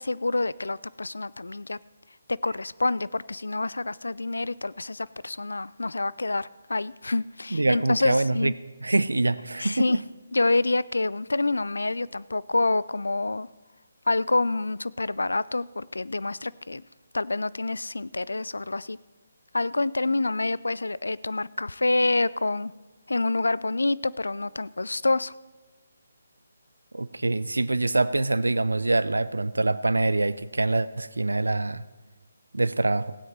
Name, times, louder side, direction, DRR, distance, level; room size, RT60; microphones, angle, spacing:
voice 1, 0.0-1.8 2.4-8.5 9.6-10.0 10.3-13.5 14.1-16.8 17.1-19.0 19.5-22.7 23.1-25.3, left 2 dB, 75° left, 19 dB, 0.3 m, -27 dB
voice 2, 7.5-8.5 8.8-10.0 26.9-31.8 32.5-33.2, right 2 dB, 75° right, 17 dB, 0.5 m, -25 dB
16.5 x 9.2 x 4.3 m, 1.2 s
figure-of-eight pair, 145°, 0 cm